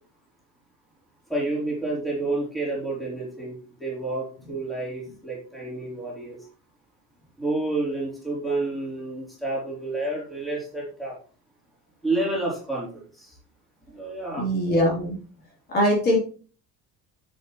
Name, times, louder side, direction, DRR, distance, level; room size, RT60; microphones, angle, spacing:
voice 1, 1.3-6.4 7.4-11.2 12.0-12.9 13.1-13.4 13.9-14.5, right 2 dB, ahead, -5 dB, 3.6 m, -29 dB
voice 2, 14.4-15.1 15.7-16.2, equal, 35° left, -2 dB, 3.4 m, -21 dB
10.0 x 7.6 x 3.1 m, 0.40 s
cardioid pair, 160°, 29 cm